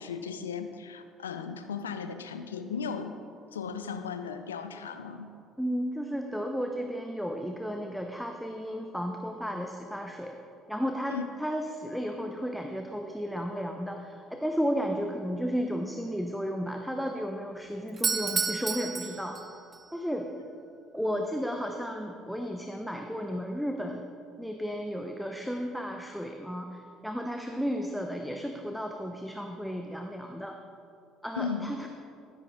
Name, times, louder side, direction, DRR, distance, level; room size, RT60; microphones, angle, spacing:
voice 1, 0.0-3.1 3.5-5.3 11.1-11.2 21.1-21.2 31.3-31.7, left 6 dB, 85° left, 9 dB, 0.5 m, -36 dB
voice 2, 5.6-10.4 10.7-19.4 19.9-20.3 20.9-24.0 24.4-30.6 31.2-31.9, equal, ahead, 3 dB, 0.8 m, -33 dB
Doorbell, 17.9-19.8, right 5 dB, 30° right, 0.8 m, -31 dB
13.0 x 10.5 x 3.5 m, 2.6 s
figure-of-eight pair, 55°, 0 cm